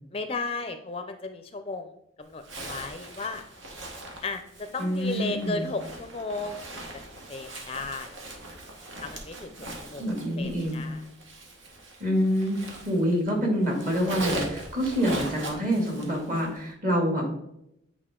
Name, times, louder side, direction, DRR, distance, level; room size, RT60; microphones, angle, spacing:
voice 1, 0.1-3.5 4.2-6.8 7.3-8.3 9.0-10.1 10.4-11.0, left 3 dB, 30° left, 8 dB, 0.4 m, -35 dB
Zipper (clothing), 2.4-13.3 13.6-16.6, right 1 dB, 80° right, 1.5 m, -40 dB
voice 2, 4.8-5.7 10.0-10.9 12.0-17.3, equal, 45° right, -1 dB, 2.2 m, -26 dB
8.7 x 4.9 x 3.7 m, 0.79 s
head